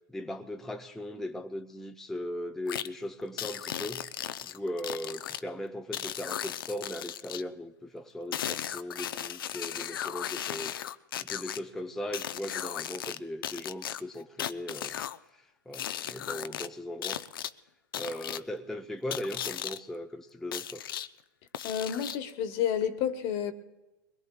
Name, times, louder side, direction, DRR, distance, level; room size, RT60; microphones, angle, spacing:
voice 1, 0.1-4.1 4.4-10.8 11.2-15.0 15.3-17.2 18.0-20.8, left 1 dB, 5° left, 0.6 m, -38 dB
sound 1, 2.7-2.9 3.4-5.4 5.9-7.4 8.3-11.6 12.1-13.2 13.4-15.2 15.7-16.7 17.0-17.5 17.9-18.4 19.1-19.8 20.5-21.1 21.5-22.3, left 10 dB, 75° left, 0.5 m, -36 dB
voice 2, 21.6-23.5, left 9 dB, 50° left, 1.3 m, -30 dB
23.0 x 21.5 x 2.2 m
hypercardioid pair, 105°, 12 cm